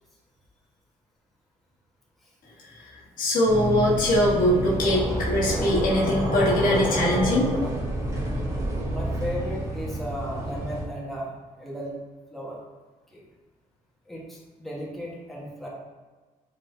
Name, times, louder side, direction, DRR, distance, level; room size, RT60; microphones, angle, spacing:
voice 1, 3.2-7.7, equal, 70° left, -5 dB, 1.3 m, -22 dB
sound 1, 3.5-10.8, equal, 20° right, 1.2 m, -29 dB
voice 2, 8.9-11.3 11.6-11.9 12.3-12.6 13.1-13.2 14.1-15.7, equal, ahead, -5 dB, 1.2 m, -35 dB
4.9 x 4.0 x 2.6 m, 1.3 s
cardioid pair, 95°, 15 cm